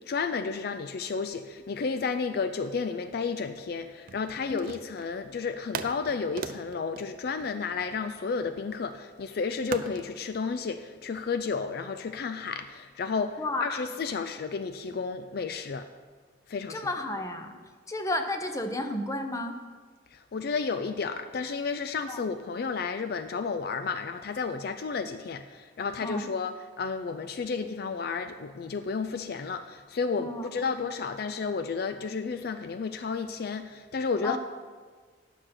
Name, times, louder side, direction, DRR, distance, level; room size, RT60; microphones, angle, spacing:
voice 1, 0.1-15.9 16.5-16.9 20.1-34.4, left 5 dB, 55° left, 9 dB, 0.4 m, -32 dB
sound 1, 4.0-5.2 5.7-8.2 9.7-10.1, right 5 dB, 50° right, 0.5 m, -39 dB
voice 2, 13.4-13.8 16.7-17.5 17.9-19.6 22.1-22.2 26.0-26.3 30.2-30.5 34.2-34.4, left 2 dB, 15° left, 6 dB, 0.7 m, -32 dB
9.9 x 6.5 x 5.8 m, 1.5 s
head